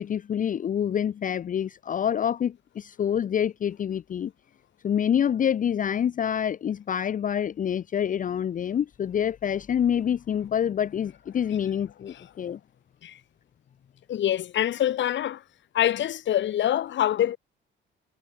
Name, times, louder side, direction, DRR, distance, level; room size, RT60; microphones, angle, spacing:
voice 1, 0.0-4.3 4.8-12.6, left 9 dB, 40° left, 0.6 m, -27 dB
voice 2, 14.1-15.4 15.7-17.4, left 11 dB, 65° left, 1.5 m, -25 dB
cardioid pair, 90°, 20 cm